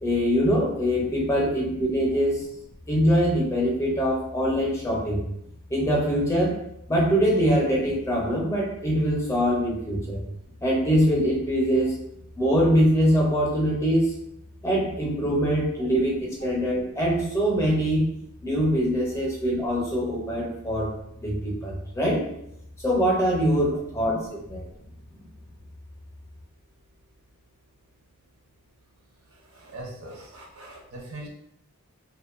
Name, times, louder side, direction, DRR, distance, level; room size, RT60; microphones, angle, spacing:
voice 1, 0.0-2.4 2.9-5.2 5.7-6.6 6.9-10.2 10.6-12.0 12.4-14.1 14.6-18.1 18.4-20.9 21.2-22.2 22.8-24.2 24.5-24.7, equal, 15° left, -4 dB, 0.5 m, -23 dB
voice 2, 29.5-31.3, right 1 dB, 75° right, 0 dB, 0.6 m, -41 dB
2.4 x 2.1 x 2.4 m, 0.77 s
head